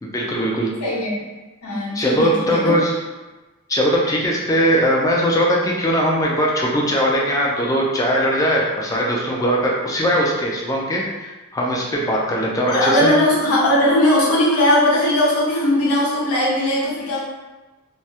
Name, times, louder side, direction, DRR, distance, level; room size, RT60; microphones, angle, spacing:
voice 1, 0.0-0.7 1.9-3.0 3.7-13.1, equal, 15° left, -3 dB, 0.3 m, -20 dB
voice 2, 0.8-1.1 1.6-2.8 12.7-17.2, left 1 dB, 80° left, -8 dB, 0.9 m, -18 dB
2.2 x 2.0 x 2.8 m, 1.2 s
head